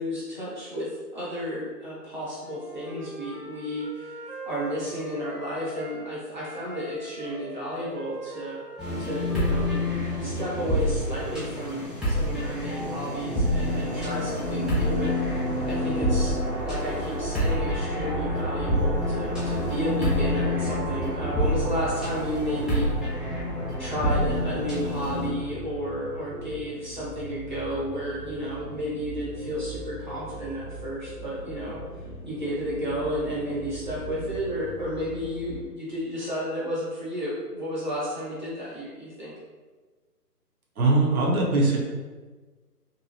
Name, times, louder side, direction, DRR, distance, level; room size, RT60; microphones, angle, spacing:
voice 1, 0.0-8.6 9.0-9.7 10.2-15.2 15.7-23.2 23.8-39.4, equal, 30° right, -9 dB, 0.8 m, -32 dB
Wind instrument woodwind instrument, 2.4-6.1 6.3-10.3, right 2 dB, 85° right, 1.2 m, -42 dB
sound 1, 8.8-25.3, left 1 dB, ahead, 0.4 m, -27 dB
sound 2, 17.9-35.6, right 1 dB, 65° left, 0.5 m, -40 dB
voice 2, 40.8-41.8, right 2 dB, 60° right, -2 dB, 0.8 m, -21 dB
2.7 x 2.2 x 2.8 m, 1.3 s
hypercardioid pair, 175°, 48 cm